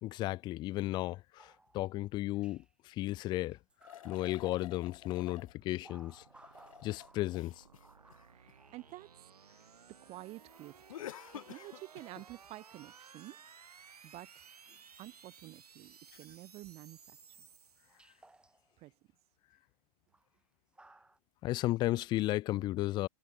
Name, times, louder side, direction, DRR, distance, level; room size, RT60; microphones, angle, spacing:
voice 1, 0.0-3.6 4.0-6.2 6.8-7.5 21.4-23.1, left 16 dB, 25° left, 0.5 m, -34 dB
sound 1, 1.4-2.0 2.4-2.7 3.4-5.1 5.6-9.7 10.5-11.2 12.2-12.3 12.7-13.1 13.5-13.6 14.9-15.0 17.3-17.4 17.9-18.8 19.5-19.6 20.1-20.4 20.7-21.2, right 2 dB, 5° right, 6.5 m, -61 dB
sound 2, 3.8-5.6 6.3-8.9 10.9-12.3, left 12 dB, 60° left, 1.3 m, -50 dB
sound 3, 3.9-18.4, right 6 dB, 80° right, 3.5 m, -58 dB
voice 2, 8.3-9.1 9.9-13.6 14.0-14.6 15.0-17.5 18.8-18.9, right 18 dB, 30° right, 4.3 m, -50 dB
hypercardioid pair, 120°, 19 cm